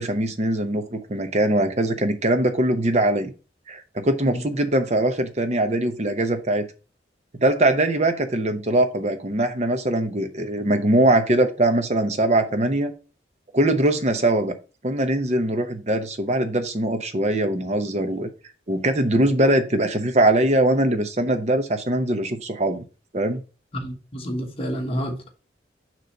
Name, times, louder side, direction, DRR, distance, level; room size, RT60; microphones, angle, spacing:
voice 1, 0.0-3.3 3.7-6.7 7.4-12.9 13.5-14.5 14.8-18.3 18.7-22.8 23.1-23.4, right 1 dB, 35° right, 0.8 m, -22 dB
voice 2, 23.7-25.3, equal, 30° left, 1.3 m, -29 dB
6.6 x 3.1 x 5.2 m
head